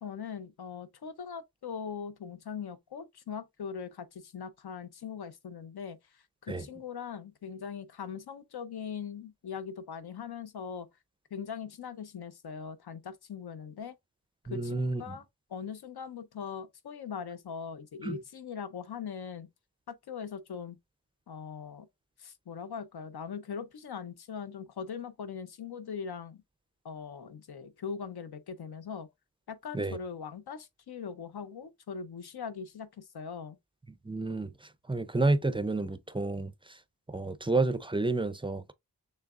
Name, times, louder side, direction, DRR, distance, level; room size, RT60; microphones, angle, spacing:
voice 1, 0.0-10.9 11.3-14.0 14.5-15.2 15.5-19.5 19.9-20.8 21.3-21.9 22.2-26.4 26.8-29.1 29.5-33.6, left 6 dB, 70° left, 0.8 m, -41 dB
voice 2, 14.5-15.2 18.0-18.2 29.7-30.0 34.0-36.8 37.1-38.7, right 2 dB, 15° right, 0.4 m, -30 dB
6.4 x 3.3 x 2.4 m
wide cardioid pair, 110°, 40 cm